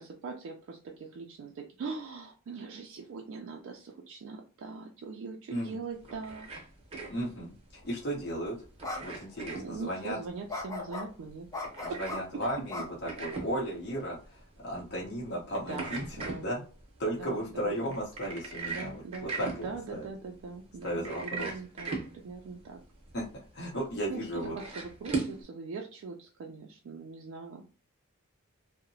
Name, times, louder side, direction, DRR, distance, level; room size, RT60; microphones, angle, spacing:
voice 1, 0.0-6.5 9.6-11.5 11.9-12.0 12.3-12.4 15.7-16.4 17.2-18.0 18.7-22.8 24.1-24.2 24.6-27.6, right 4 dB, 60° right, 1 dB, 0.3 m, -41 dB
voice 2, 5.5-5.8 7.1-8.6 9.0-10.2 11.8-16.6 17.0-20.1 20.8-21.5 23.1-23.2 23.5-24.6, right 1 dB, 50° left, -5 dB, 0.7 m, -35 dB
sound 1, 5.9-25.4, right 4 dB, 30° right, 0.7 m, -41 dB
sound 2, 8.0-8.2 8.8-9.0 9.4-9.5 10.5-11.1 11.5-12.2 12.7-13.5, left 3 dB, 15° left, 0.5 m, -37 dB
2.7 x 2.0 x 2.6 m, 0.36 s
head